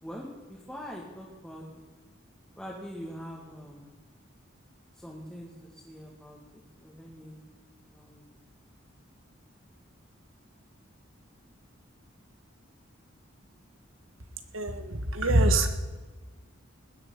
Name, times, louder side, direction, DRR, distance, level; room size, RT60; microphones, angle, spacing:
voice 1, 0.0-1.9 2.6-3.9 5.0-5.5 5.8-7.4 7.9-8.3, equal, 5° left, -4 dB, 2.1 m, -43 dB
voice 2, 14.5-15.7, right 1 dB, 85° right, 8 dB, 1.8 m, -24 dB
20.0 x 10.5 x 5.7 m, 1.3 s
head